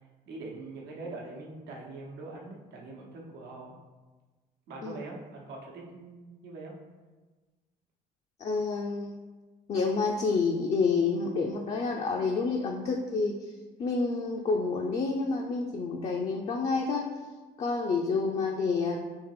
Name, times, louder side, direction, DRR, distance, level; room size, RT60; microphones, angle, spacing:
voice 1, 0.3-3.8 4.7-6.7, right 2 dB, 80° right, -1 dB, 1.0 m, -43 dB
voice 2, 8.4-9.2 9.7-13.4 13.8-17.1 17.6-19.0, left 4 dB, 40° left, 0 dB, 0.5 m, -28 dB
3.7 x 2.9 x 4.8 m, 1.3 s
cardioid pair, 110°, 17 cm